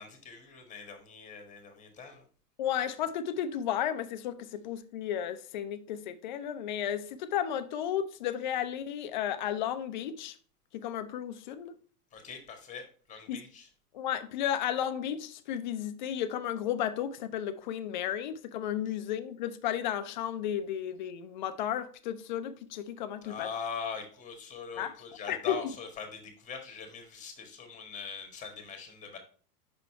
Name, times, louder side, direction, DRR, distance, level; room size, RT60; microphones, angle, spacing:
voice 1, 0.0-2.2 12.1-13.7 23.2-29.2, left 6 dB, 15° left, 1.4 m, -42 dB
voice 2, 2.6-10.4 10.7-11.8 13.3-13.4 13.9-23.5 24.8-24.9 25.3-25.6, left 10 dB, 35° left, 0.4 m, -33 dB
5.7 x 4.0 x 4.4 m
hypercardioid pair, 125°, 48 cm